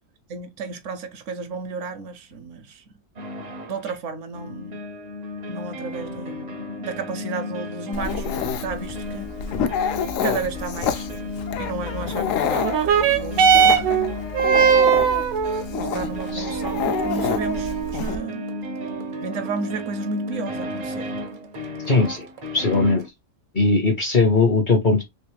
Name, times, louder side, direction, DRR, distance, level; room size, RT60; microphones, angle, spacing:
voice 1, 0.3-2.8 3.7-4.8 5.5-6.5 6.8-9.3 10.2-14.1 15.9-18.5 19.2-21.1, right 4 dB, 70° right, 0.9 m, -33 dB
sound 1, 3.2-3.9 4.3-23.1, left 2 dB, 45° right, 0.5 m, -34 dB
Dog, 7.9-18.2, left 7 dB, 70° left, 0.9 m, -28 dB
sound 2, 12.6-21.6 22.4-22.5, right 7 dB, 85° right, 1.2 m, -22 dB
voice 2, 21.9-22.3 22.5-23.0 23.5-25.0, left 3 dB, 50° left, 0.7 m, -19 dB
3.3 x 2.9 x 3.2 m
omnidirectional pair, 1.4 m